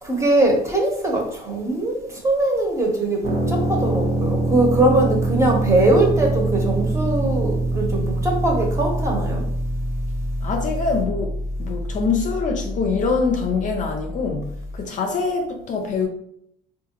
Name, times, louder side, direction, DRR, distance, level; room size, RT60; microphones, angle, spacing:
voice 1, 0.0-9.4, right 2 dB, 15° right, 1.0 m, -21 dB
sound 1, 3.2-14.8, right 2 dB, 45° right, 1.0 m, -25 dB
voice 2, 10.4-16.1, left 4 dB, 50° left, 0.5 m, -24 dB
3.6 x 2.4 x 2.9 m
cardioid pair, 110°, 17 cm